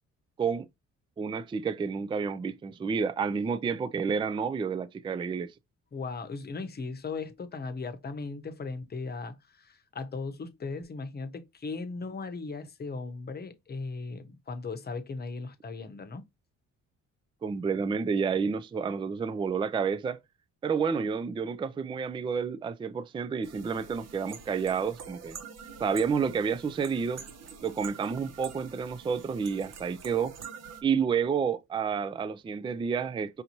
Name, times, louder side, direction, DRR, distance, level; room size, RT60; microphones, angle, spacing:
voice 1, 1.2-5.5 17.4-20.2 20.6-25.4 25.8-27.2 27.6-30.4 30.8-33.4, right 6 dB, 15° right, 0.3 m, -30 dB
voice 2, 5.9-16.3, left 4 dB, 35° left, 0.9 m, -37 dB
sound 1, 23.4-30.8, right 6 dB, 60° right, 1.0 m, -46 dB
5.1 x 2.7 x 2.9 m
cardioid pair, 90°, 30 cm